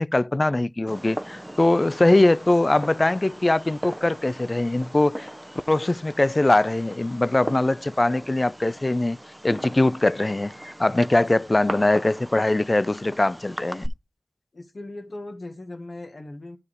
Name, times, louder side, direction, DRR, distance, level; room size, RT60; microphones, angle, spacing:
voice 1, 0.0-5.3 5.7-9.2 9.4-10.5 10.8-13.8, left 2 dB, 35° left, 0.3 m, -21 dB
Fireworks, 0.9-13.9, right 1 dB, 10° right, 0.6 m, -38 dB
voice 2, 14.5-16.6, left 2 dB, 60° left, 1.4 m, -39 dB
12.0 x 4.7 x 3.3 m
wide cardioid pair, 55°, 0 cm